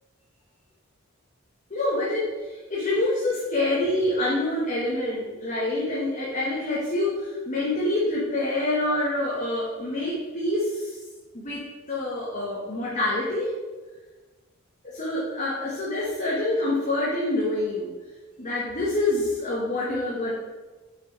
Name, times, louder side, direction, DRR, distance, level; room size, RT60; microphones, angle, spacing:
voice 1, 1.7-11.0 11.3-13.5 14.8-17.9 18.4-20.3, left 1 dB, 35° left, -6 dB, 1.3 m, -26 dB
6.8 x 4.7 x 4.3 m, 1.3 s
head